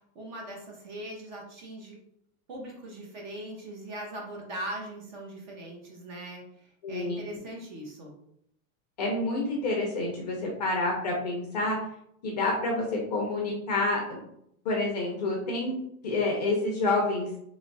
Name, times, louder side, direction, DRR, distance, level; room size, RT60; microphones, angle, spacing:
voice 1, 0.1-2.0 2.5-8.1, right 1 dB, 30° right, 0 dB, 0.6 m, -40 dB
voice 2, 6.8-7.2 9.0-11.8 12.2-12.9 13.1-14.2 14.6-15.7 16.0-17.3, left 2 dB, 30° left, -1 dB, 0.5 m, -28 dB
3.0 x 2.3 x 3.8 m, 0.73 s
supercardioid pair, 175°, 44 cm